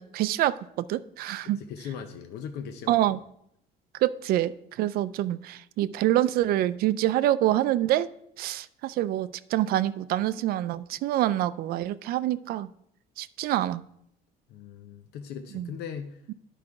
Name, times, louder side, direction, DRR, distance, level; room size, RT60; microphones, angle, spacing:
voice 1, 0.0-1.6 2.9-3.2 3.9-8.1 8.4-12.7 13.2-13.8 15.5-15.7, right 13 dB, 65° right, 15 dB, 0.4 m, -26 dB
voice 2, 1.4-3.0 14.5-16.2, left 7 dB, 75° left, 7 dB, 0.7 m, -39 dB
10.5 x 5.0 x 4.8 m, 0.74 s
cardioid pair, 165°, 17 cm